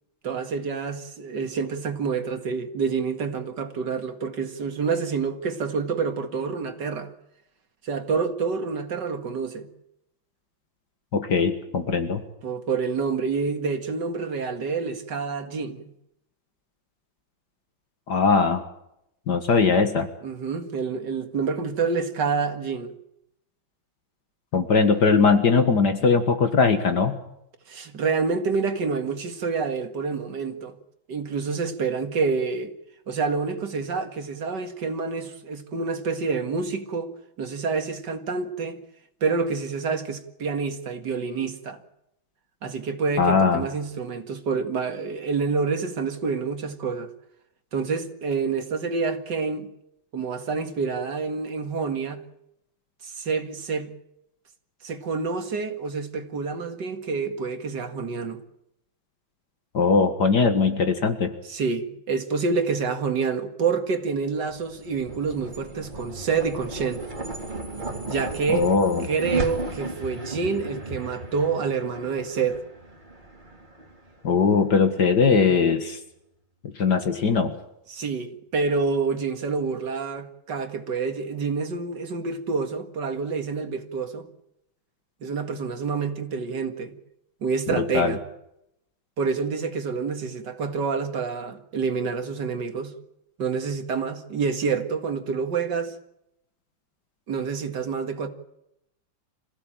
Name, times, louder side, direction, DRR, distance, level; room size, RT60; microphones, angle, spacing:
voice 1, 0.2-7.1 7.8-9.7 12.4-15.9 20.2-23.0 27.7-30.8 31.1-32.7 33.1-37.1 37.4-38.8 39.2-41.8 42.6-47.1 47.7-49.7 50.1-52.2 53.0-53.9 54.8-58.4 61.4-67.0 68.1-68.7 69.0-72.6 77.9-84.3 85.2-86.9 87.4-88.2 89.2-92.9 93.4-96.0 97.3-98.3, right 5 dB, 60° right, 2.5 m, -27 dB
voice 2, 11.1-12.2 18.1-18.6 19.3-20.1 24.5-27.2 43.2-43.7 59.7-61.3 68.5-69.1 74.2-76.0 76.6-77.5 87.7-88.2, left 5 dB, 55° left, 2.2 m, -20 dB
sound 1, 64.3-74.9, right 2 dB, 20° right, 3.6 m, -35 dB
26.0 x 16.0 x 9.0 m
omnidirectional pair, 2.2 m